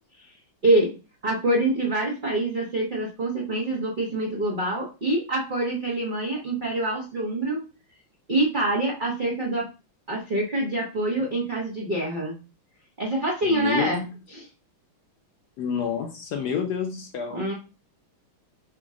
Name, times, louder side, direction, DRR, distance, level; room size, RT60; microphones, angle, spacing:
voice 1, 1.2-7.6 8.3-9.6 10.1-12.4 13.0-14.0 14.3-14.5 17.3-17.5, right 1 dB, 75° right, -3 dB, 0.4 m, -25 dB
voice 2, 13.4-14.1 15.6-17.4, left 6 dB, 70° left, 3 dB, 1.0 m, -29 dB
5.0 x 2.1 x 3.6 m, 0.32 s
omnidirectional pair, 2.2 m